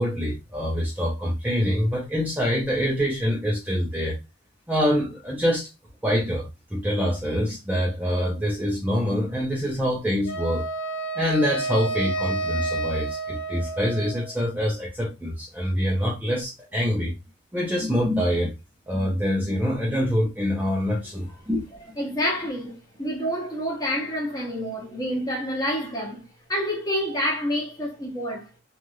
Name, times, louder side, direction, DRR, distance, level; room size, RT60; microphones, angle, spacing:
voice 1, 0.0-4.2 4.7-5.7 6.0-10.7 11.2-17.1 17.5-18.5 18.9-21.6, equal, 10° right, 0.5 m, -25 dB
Wind instrument woodwind instrument, 10.3-14.4, right 3 dB, 80° left, 0.4 m, -30 dB
voice 2, 22.0-28.5, equal, 15° left, 0.9 m, -28 dB
3.2 x 2.4 x 2.6 m
head